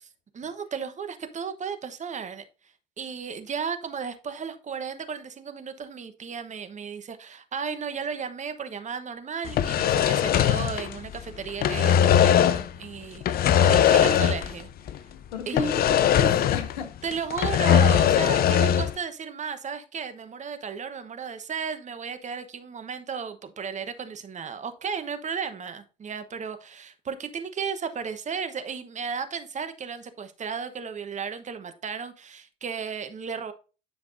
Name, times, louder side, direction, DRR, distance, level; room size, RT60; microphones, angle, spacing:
voice 1, 0.3-2.4 3.0-14.7 15.5-15.9 17.0-33.5, right 6 dB, 35° right, 1.1 m, -34 dB
sound 1, 9.5-11.2 11.5-12.7 13.2-14.6 14.9-15.0 15.6-16.8 17.1-19.0, left 9 dB, 45° left, 0.6 m, -20 dB
voice 2, 13.6-14.2 15.1-16.9, left 4 dB, 70° left, 1.4 m, -33 dB
10.0 x 5.8 x 2.7 m
figure-of-eight pair, 55°, 21 cm